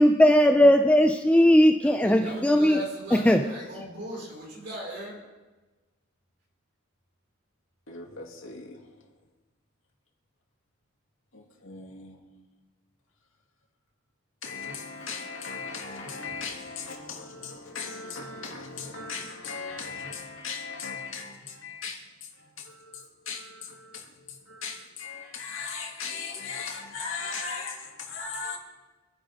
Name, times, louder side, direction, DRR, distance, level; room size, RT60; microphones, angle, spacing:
voice 1, 0.0-2.8 3.1-3.4, equal, 5° left, 0.5 m, -18 dB
voice 2, 1.8-5.2, equal, 60° right, 5.4 m, -38 dB
voice 3, 7.9-9.1 11.3-12.2 14.4-28.6, left 5 dB, 80° left, 2.7 m, -38 dB
26.0 x 10.0 x 3.7 m
head